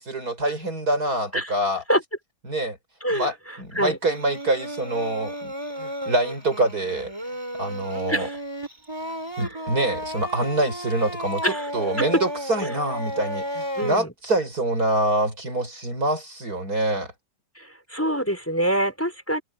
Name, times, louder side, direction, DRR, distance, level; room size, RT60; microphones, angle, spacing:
voice 1, 0.0-1.8 2.4-2.8 3.1-7.1 7.6-8.3 9.4-17.1, right 1 dB, 55° right, 6.0 m, -25 dB
Singing, 4.1-14.0, equal, 15° right, 4.8 m, -33 dB
voice 2, 13.8-14.1 17.6-19.4, equal, 5° left, 5.9 m, -25 dB
omnidirectional pair, 2.0 m